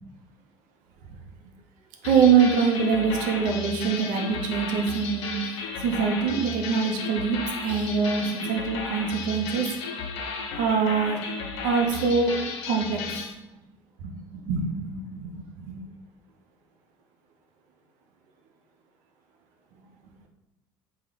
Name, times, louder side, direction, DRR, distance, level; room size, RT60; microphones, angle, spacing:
sound 1, 2.0-13.3, left 4 dB, 65° left, 0.5 m, -34 dB
voice 1, 2.0-5.3 5.8-9.7 10.6-11.2 11.6-12.4 12.7-13.0 14.0-14.1 14.4-15.8, right 6 dB, 55° right, 3 dB, 0.6 m, -24 dB
3.3 x 2.2 x 3.3 m, 0.97 s
figure-of-eight pair, 60°, 15 cm